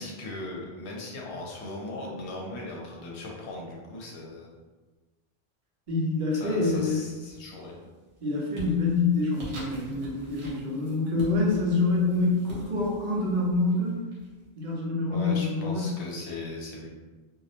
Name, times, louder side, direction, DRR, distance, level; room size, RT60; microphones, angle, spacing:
voice 1, 0.0-4.5 6.3-7.9 15.1-16.9, left 2 dB, 75° left, -2 dB, 0.8 m, -38 dB
voice 2, 5.9-7.0 8.2-14.0 14.6-16.0, left 3 dB, 50° right, -3 dB, 0.6 m, -26 dB
sound 1, 7.2-7.7 8.1-14.7, equal, 70° right, 1.0 m, -45 dB
2.3 x 2.0 x 2.7 m, 1.3 s
omnidirectional pair, 1.2 m